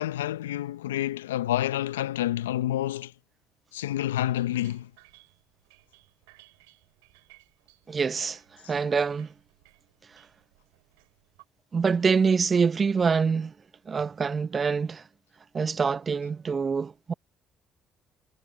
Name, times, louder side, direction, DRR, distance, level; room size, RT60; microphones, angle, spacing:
voice 1, 0.0-3.1 3.7-4.9, left 13 dB, 85° left, 0.7 m, -28 dB
sound 1, 4.2-11.4, right 26 dB, 80° right, 6.0 m, -59 dB
voice 2, 7.9-8.4 8.7-9.3 11.7-13.5 13.9-15.0 15.5-17.1, right 5 dB, 40° right, 0.7 m, -25 dB
hypercardioid pair, 50°, 0 cm